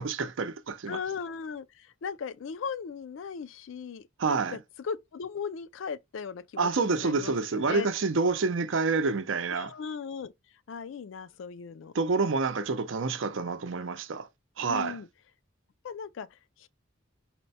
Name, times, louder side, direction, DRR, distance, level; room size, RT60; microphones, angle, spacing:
voice 1, 0.0-1.0 4.2-4.6 6.6-9.7 11.9-14.3 14.6-15.0, right 4 dB, 70° right, 0.6 m, -28 dB
voice 2, 0.9-7.9 9.5-10.3 10.7-11.9 14.7-15.1 15.8-16.7, left 6 dB, 70° left, 0.4 m, -38 dB
4.3 x 2.1 x 4.0 m
head